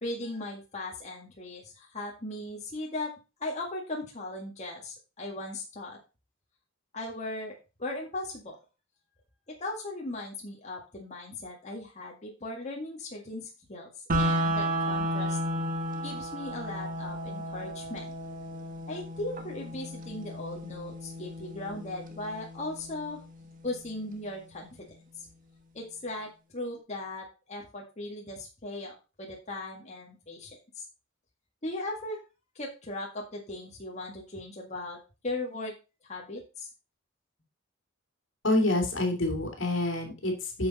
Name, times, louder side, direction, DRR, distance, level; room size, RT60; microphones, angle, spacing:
voice 1, 0.0-3.1 3.4-6.0 6.9-8.6 9.6-15.4 16.0-18.1 18.9-23.2 23.6-25.3 25.7-30.9 31.6-32.2 32.6-35.7 36.0-36.7, left 2 dB, 35° left, -1 dB, 2.0 m, -38 dB
sound 1, 14.1-24.1, equal, 40° right, 1.3 m, -33 dB
voice 2, 38.4-40.7, left 2 dB, 65° left, 3 dB, 2.8 m, -27 dB
9.9 x 6.4 x 4.2 m, 0.30 s
head